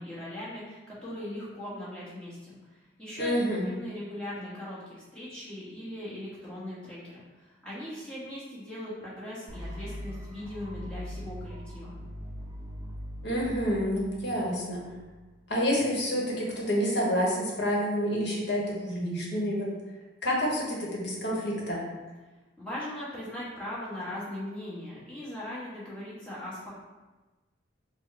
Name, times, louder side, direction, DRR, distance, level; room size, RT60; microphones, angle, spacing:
voice 1, 0.0-3.3 3.6-4.8 5.1-11.9 22.6-26.8, left 1 dB, 5° left, -10 dB, 1.3 m, -39 dB
voice 2, 3.2-3.7 13.2-14.8 15.5-19.7 20.2-21.8, equal, 60° left, -3 dB, 1.1 m, -28 dB
sound 1, 9.5-15.4, equal, 20° right, 0.5 m, -41 dB
4.6 x 2.2 x 4.2 m, 1.2 s
head